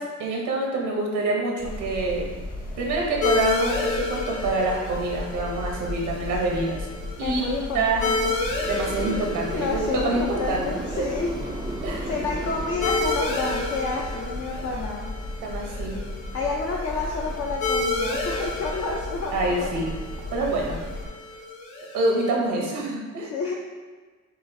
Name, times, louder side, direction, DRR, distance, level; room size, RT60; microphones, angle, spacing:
voice 1, 0.0-2.3 2.8-6.9 7.2-7.4 7.7-8.0 8.7-11.0 11.8-12.1 15.4-16.0 19.3-19.9 20.3-20.8 21.9-23.3, right 2 dB, 90° right, -1 dB, 1.0 m, -26 dB
sound 1, 1.6-21.1, left 1 dB, 30° left, 0.9 m, -35 dB
sound 2, 3.2-22.4, left 3 dB, 70° left, 0.9 m, -31 dB
voice 2, 7.2-8.4 9.5-11.3 12.1-15.1 16.3-19.7 23.3-23.5, left 3 dB, 50° left, -2 dB, 0.6 m, -29 dB
sound 3, 8.5-14.9, right 2 dB, 15° right, 0.4 m, -36 dB
7.1 x 2.4 x 2.6 m, 1.4 s
cardioid pair, 90°, 30 cm